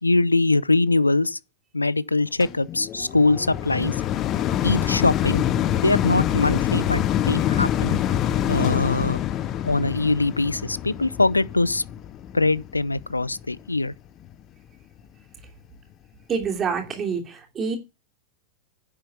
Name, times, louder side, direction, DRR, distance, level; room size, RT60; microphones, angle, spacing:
voice 1, 0.0-1.4 1.7-4.0 4.6-5.4 5.8-8.0 8.5-9.2 9.6-11.8 12.3-13.9, left 2 dB, 80° left, 0.6 m, -22 dB
sound 1, 2.4-13.7 14.3-14.4, left 11 dB, 35° left, 0.8 m, -26 dB
voice 2, 16.3-17.8, right 6 dB, 25° right, 3.0 m, -27 dB
10.5 x 7.5 x 7.1 m
figure-of-eight pair, 90°, 0 cm